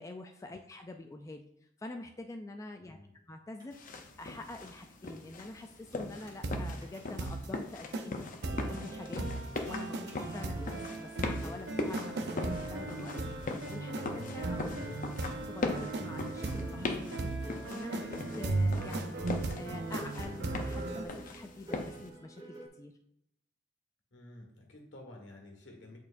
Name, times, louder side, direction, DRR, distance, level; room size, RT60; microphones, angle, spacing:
voice 1, 0.0-1.4 1.8-3.0 3.3-8.2 8.4-12.3 12.5-14.8 15.4-22.9, left 2 dB, 15° left, 4 dB, 0.3 m, -46 dB
voice 2, 2.8-3.1 14.5-15.0 24.1-26.0, left 1 dB, 75° left, 1 dB, 1.6 m, -51 dB
sound 1, 3.6-3.7 4.3-4.4 4.6-4.8 5.1-5.2 5.9-6.4 6.8-7.1 7.9-8.0 8.2-8.3 8.5-8.7 9.6-9.7 10.1-10.2 10.4-22.7, equal, 25° right, 2.0 m, -50 dB
sound 2, 3.7-22.1, left 2 dB, 45° left, 0.7 m, -41 dB
sound 3, 6.4-6.7 7.2-7.5 7.9-8.1 8.4-21.0, right 2 dB, 65° right, 0.6 m, -36 dB
8.3 x 4.5 x 2.6 m, 0.78 s
head